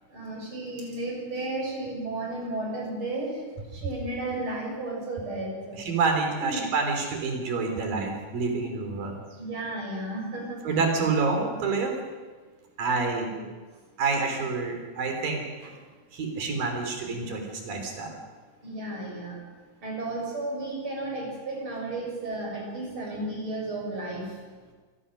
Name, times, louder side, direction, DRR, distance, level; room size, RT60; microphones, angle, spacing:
voice 1, 0.1-3.4 3.7-5.9 6.5-6.6 9.4-10.6 13.3-13.4 18.6-19.4 19.8-24.4, right 2 dB, 35° right, -1 dB, 6.9 m, -33 dB
voice 2, 5.9-9.1 10.6-11.9 12.8-13.3 14.0-15.7 16.1-18.2, right 4 dB, 80° right, 3 dB, 5.0 m, -28 dB
26.5 x 17.0 x 6.4 m, 1.4 s
omnidirectional pair, 3.9 m